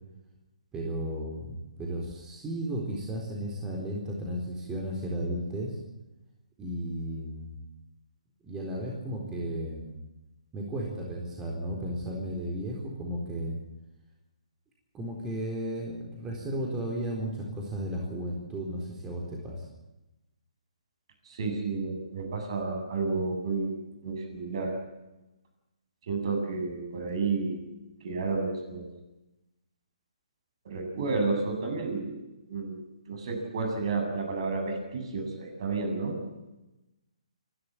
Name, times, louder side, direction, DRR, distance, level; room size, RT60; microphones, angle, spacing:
voice 1, 0.7-5.8 6.6-7.6 8.4-10.0 10.5-13.6 14.9-19.7, right 1 dB, 15° right, -1 dB, 4.1 m, -34 dB
voice 2, 21.2-24.7 26.0-27.7 28.0-28.9 30.6-32.2 32.5-36.2, right 3 dB, 50° right, 3 dB, 7.8 m, -31 dB
28.5 x 12.5 x 8.7 m, 0.99 s
figure-of-eight pair, 140°, 4 cm